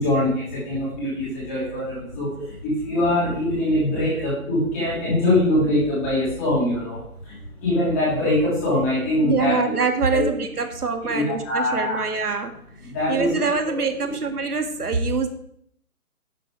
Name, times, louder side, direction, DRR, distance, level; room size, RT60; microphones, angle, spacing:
voice 1, 0.0-2.3 2.6-9.7 10.1-10.2 11.1-12.0 12.8-13.3 14.0-14.1, left 1 dB, 10° left, -8 dB, 3.1 m, -23 dB
voice 2, 9.2-12.6 13.1-15.3, right 4 dB, 90° right, 6 dB, 2.0 m, -25 dB
11.5 x 7.5 x 4.9 m, 0.70 s
hypercardioid pair, 180°, 44 cm